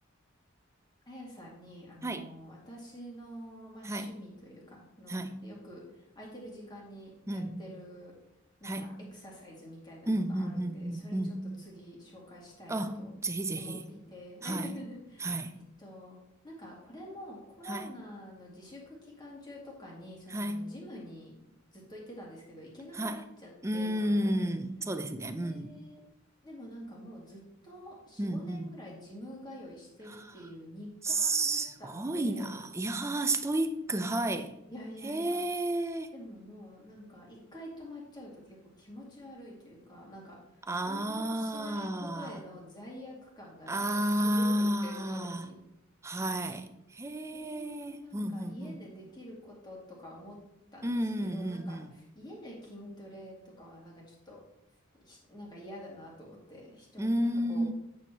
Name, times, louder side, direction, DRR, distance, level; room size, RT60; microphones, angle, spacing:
voice 1, 1.1-8.1 8.6-11.2 11.6-13.1 13.5-16.2 16.4-21.3 21.7-24.5 25.3-26.0 26.4-32.6 34.7-35.4 36.1-45.5 47.3-50.4 50.7-50.9 51.2-54.4 54.9-57.7, left 1 dB, 20° left, 2.3 m, -47 dB
voice 2, 2.0-2.3 3.8-4.2 5.1-5.5 7.3-7.7 8.6-9.0 10.1-11.5 12.7-13.8 14.4-14.7 15.2-15.6 17.6-17.9 20.3-20.7 22.9-23.2 23.6-25.7 28.2-28.7 30.1-30.3 31.0-34.6 35.0-36.1 40.7-42.4 43.7-45.5 46.0-48.8 50.8-51.9 57.0-57.7, right 1 dB, 15° right, 0.5 m, -32 dB
8.9 x 7.1 x 3.0 m
head